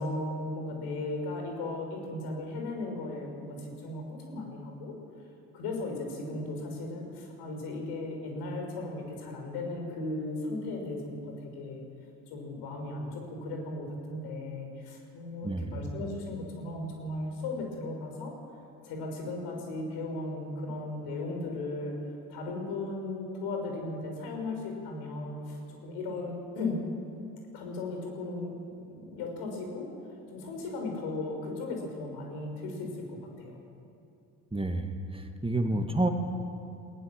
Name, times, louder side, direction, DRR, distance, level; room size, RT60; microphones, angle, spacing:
voice 1, 0.0-4.9 5.5-11.8 12.3-18.3 18.8-22.0 22.3-26.8 27.5-28.6 28.9-33.6 35.6-35.8, left 2 dB, 75° left, 2 dB, 5.7 m, -36 dB
voice 2, 15.4-15.8 34.5-36.1, right 1 dB, 15° right, 5 dB, 2.1 m, -29 dB
20.0 x 18.5 x 7.4 m, 2.6 s
hypercardioid pair, 60°, 41 cm